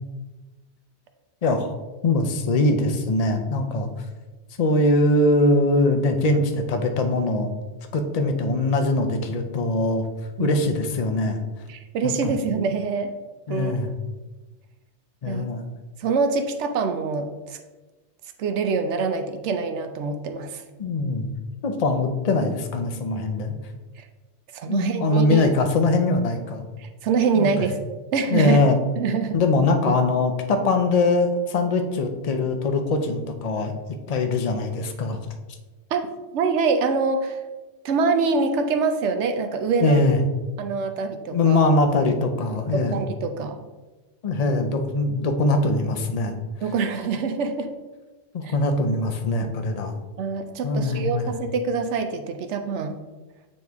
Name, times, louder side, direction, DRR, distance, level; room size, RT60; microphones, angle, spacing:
voice 1, 1.4-1.7 2.0-3.9 4.6-7.5 7.9-10.1 10.4-11.4 12.0-12.3 13.5-13.9 15.2-15.6 20.8-21.3 21.6-23.5 24.7-26.6 27.3-27.7 28.3-28.8 29.3-33.7 34.1-35.2 39.8-40.2 41.3-43.0 44.2-46.4 48.3-49.9 50.6-51.3, left 2 dB, 40° left, 5 dB, 0.6 m, -22 dB
voice 2, 11.7-13.1 13.5-13.8 15.3-15.5 16.0-17.6 18.4-20.6 24.0-24.1 24.5-25.5 26.8-27.8 28.1-28.6 29.0-29.4 35.9-36.0 36.3-37.4 37.8-40.0 40.6-41.6 42.7-43.6 46.6-47.7 48.4-48.5 50.2-53.0, right 4 dB, 80° right, 7 dB, 0.9 m, -25 dB
8.7 x 3.1 x 3.4 m, 1.2 s
omnidirectional pair, 1.2 m